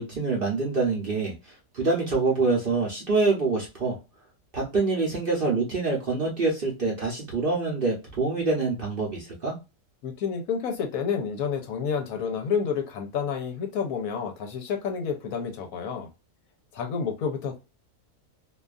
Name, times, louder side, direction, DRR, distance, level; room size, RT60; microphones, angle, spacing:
voice 1, 0.0-1.3 1.7-4.0 4.5-9.5, right 3 dB, 45° right, 0.8 m, -25 dB
voice 2, 10.0-16.1 16.7-17.6, left 6 dB, 70° left, 1.0 m, -29 dB
2.7 x 2.3 x 2.3 m
omnidirectional pair, 1.6 m